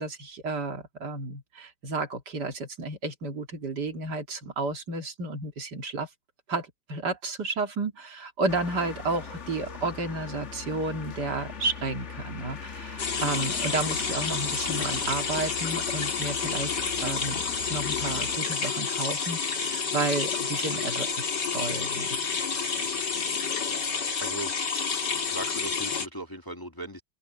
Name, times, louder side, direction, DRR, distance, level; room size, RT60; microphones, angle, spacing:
voice 1, 0.0-6.1 6.5-17.4 17.7-22.1, right 3 dB, 70° right, 2.8 m, -32 dB
sound 1, 8.5-18.4, left 5 dB, 45° left, 1.5 m, -40 dB
sound 2, 13.0-26.1, left 5 dB, 75° left, 3.0 m, -29 dB
voice 2, 24.2-24.5 25.3-27.0, right 1 dB, 15° left, 1.6 m, -37 dB
omnidirectional pair, 1.9 m